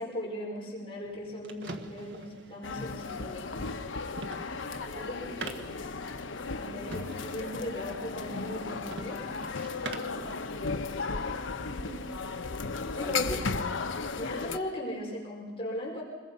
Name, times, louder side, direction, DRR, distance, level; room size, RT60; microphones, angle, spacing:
voice 1, 0.0-3.6 4.9-5.8 6.6-9.3 9.9-10.3 11.7-12.1 12.9-13.4 14.2-16.0, left 1 dB, 30° left, -4 dB, 5.2 m, -38 dB
sound 1, 1.0-10.3, right 2 dB, 65° right, 1.6 m, -45 dB
sound 2, 2.6-14.6, left 4 dB, 65° left, 0.9 m, -35 dB
voice 2, 9.9-11.9 12.7-13.2, equal, 25° right, -1 dB, 5.2 m, -54 dB
26.5 x 21.5 x 5.6 m, 1.4 s
head